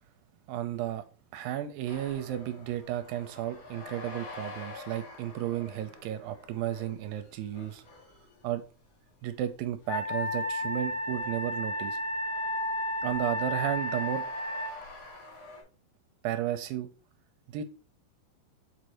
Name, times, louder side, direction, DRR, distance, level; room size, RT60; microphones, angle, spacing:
voice 1, 0.5-1.0 1.3-7.8 8.4-8.6 9.2-12.0 13.0-14.2 16.2-16.9 17.5-17.6, right 12 dB, 80° right, 9 dB, 2.2 m, -33 dB
sound 1, 1.9-15.6, left 3 dB, 45° left, 3.4 m, -49 dB
Wind instrument woodwind instrument, 9.9-14.8, left 1 dB, 80° left, 2.9 m, -32 dB
7.4 x 4.8 x 3.0 m, 0.36 s
omnidirectional pair, 4.6 m